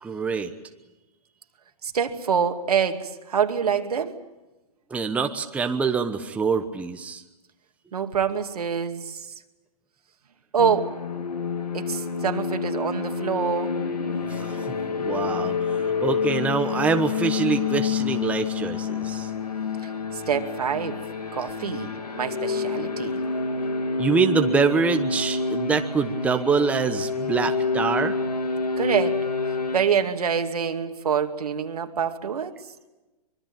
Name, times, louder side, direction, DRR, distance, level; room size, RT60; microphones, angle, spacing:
voice 1, 0.0-0.5 4.9-7.2 14.3-19.3 24.0-28.2, right 5 dB, 5° right, 6 dB, 1.1 m, -25 dB
voice 2, 1.8-4.2 7.9-9.3 10.5-10.9 11.7-13.8 19.8-21.0 21.3-23.2 28.8-29.3 29.7-32.6, right 7 dB, 75° right, 6 dB, 2.4 m, -26 dB
sound 1, 10.6-29.8, left 4 dB, 90° left, 2.8 m, -28 dB
24.5 x 22.5 x 8.9 m, 1.1 s
hypercardioid pair, 140°, 20 cm